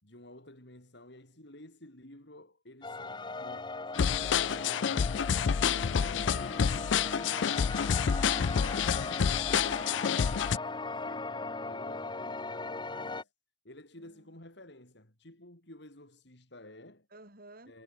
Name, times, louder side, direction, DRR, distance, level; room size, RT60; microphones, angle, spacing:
voice 1, 0.0-5.2 5.8-8.0 8.5-13.3 13.6-17.1 17.7-17.8, left 1 dB, 70° left, 6.1 m, -52 dB
sound 1, 2.8-13.2, left 3 dB, 25° left, 2.4 m, -39 dB
sound 2, 3.9-10.6, left 7 dB, 85° left, 0.5 m, -28 dB
voice 2, 17.1-17.8, right 1 dB, 55° right, 7.3 m, -56 dB
head